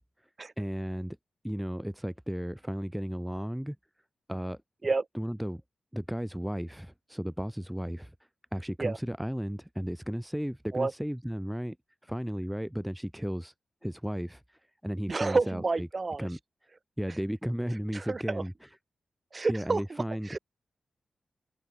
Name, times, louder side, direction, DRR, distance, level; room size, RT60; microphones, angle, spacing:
voice 1, 0.6-1.2 1.4-3.8 4.3-4.6 5.1-5.6 5.9-8.1 8.5-11.8 12.0-13.5 13.8-15.9 16.2-16.4 17.0-18.7 19.5-20.3, equal, 5° right, 2.2 m, -34 dB
voice 2, 15.1-16.3 17.9-18.4 19.3-20.4, right 3 dB, 40° right, 2.1 m, -29 dB
open air
cardioid pair, 70°, 0 cm